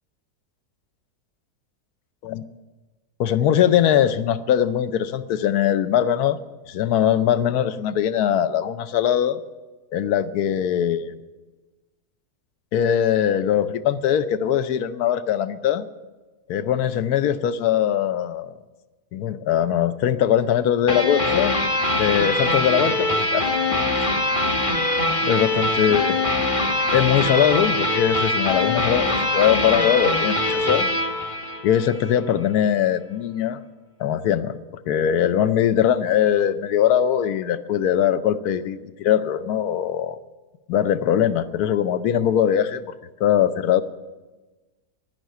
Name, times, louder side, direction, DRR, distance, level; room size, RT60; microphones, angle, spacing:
voice 1, 3.2-6.4 6.7-9.4 9.9-11.1 12.7-15.9 16.5-18.5 19.1-21.6 22.0-24.1 25.2-26.2 26.9-30.9 31.6-33.6 34.0-40.2 40.7-42.9 43.2-43.8, left 9 dB, 75° left, 12 dB, 1.2 m, -21 dB
sound 1, 20.9-32.1, left 2 dB, 25° left, 1.0 m, -23 dB
11.0 x 10.5 x 9.2 m, 1.2 s
omnidirectional pair, 1.7 m